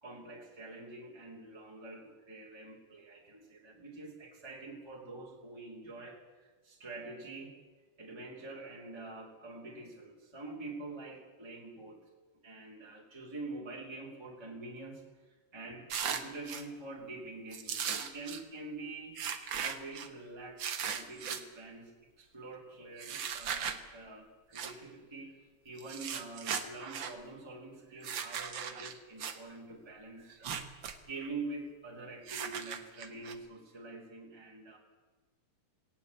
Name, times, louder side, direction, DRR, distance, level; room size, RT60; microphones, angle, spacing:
voice 1, 0.0-7.6 8.0-12.0 12.4-19.2 19.6-34.8, right 3 dB, 10° right, -2 dB, 2.8 m, -46 dB
sound 1, 15.9-16.6 17.5-18.4 19.2-20.1 20.6-21.4 23.0-23.8 24.5-24.7 25.8-27.1 28.0-29.4 30.3-31.0 31.2-31.3 32.3-33.3, right 7 dB, 55° right, 1.4 m, -37 dB
18.5 x 18.0 x 8.4 m, 1.4 s
omnidirectional pair, 3.8 m